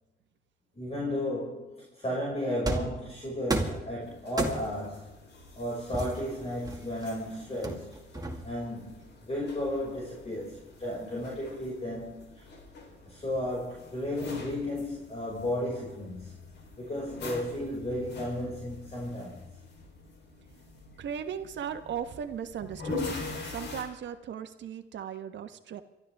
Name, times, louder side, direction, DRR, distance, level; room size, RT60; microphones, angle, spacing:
voice 1, 0.8-5.2 5.5-7.9 8.4-8.9 9.2-12.5 13.0-16.3 16.8-19.4, left 1 dB, 30° left, -5 dB, 5.9 m, -34 dB
sound 1, 2.7-3.0 3.5-3.9 4.4-4.9 5.9-7.1 7.6-8.6, right 2 dB, 20° right, 2.2 m, -32 dB
sound 2, 4.0-23.8, left 3 dB, 60° left, 4.0 m, -44 dB
voice 2, 21.0-25.8, right 8 dB, 65° right, 8 dB, 1.4 m, -37 dB
27.5 x 12.5 x 3.6 m, 0.99 s
cardioid pair, 90°, 20 cm